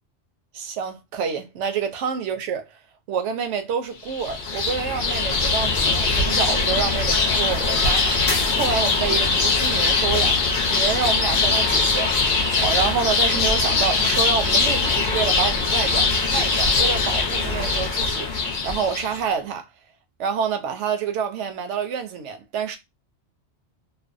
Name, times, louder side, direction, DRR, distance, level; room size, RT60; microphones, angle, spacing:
voice 1, 0.5-2.8 3.1-8.2 8.5-10.4 10.7-12.1 12.6-18.3 18.6-19.7 20.2-22.8, right 6 dB, 90° right, 0.9 m, -27 dB
sound 1, 4.1-19.2, left 4 dB, 50° left, 0.7 m, -21 dB
2.6 x 2.0 x 2.4 m
omnidirectional pair, 1.2 m